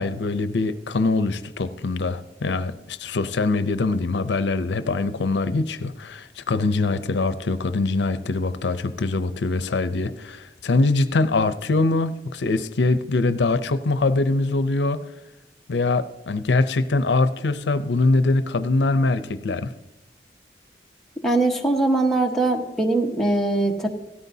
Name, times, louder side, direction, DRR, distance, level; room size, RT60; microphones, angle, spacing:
voice 1, 0.0-15.0 15.7-19.7, left 3 dB, 90° left, 12 dB, 0.6 m, -23 dB
voice 2, 21.2-23.9, right 2 dB, ahead, 0 dB, 1.2 m, -21 dB
17.0 x 13.5 x 2.7 m, 0.92 s
head